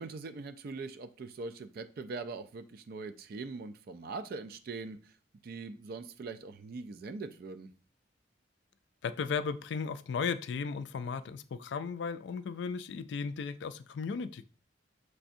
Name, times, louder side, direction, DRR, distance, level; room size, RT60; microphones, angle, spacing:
voice 1, 0.0-5.1 5.4-7.7, right 3 dB, 50° right, 11 dB, 0.3 m, -42 dB
voice 2, 9.0-14.5, left 5 dB, 65° left, 13 dB, 0.3 m, -35 dB
5.9 x 3.3 x 2.6 m, 0.38 s
head